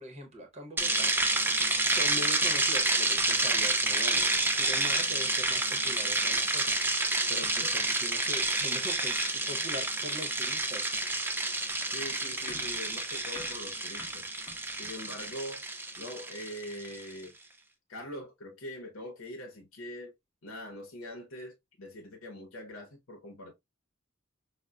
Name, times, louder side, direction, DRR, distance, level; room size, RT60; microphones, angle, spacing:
voice 1, 0.0-11.4 12.0-12.2, equal, 35° right, 0.8 m, -43 dB
sound 1, 0.8-17.0, right 2 dB, 10° right, 0.4 m, -29 dB
voice 2, 11.9-14.3 14.8-15.6 16.0-17.3 17.9-20.1 20.4-23.5, left 1 dB, 75° left, 0.8 m, -43 dB
sound 2, 12.5-15.4, left 3 dB, 15° left, 0.8 m, -51 dB
5.1 x 2.1 x 2.2 m
head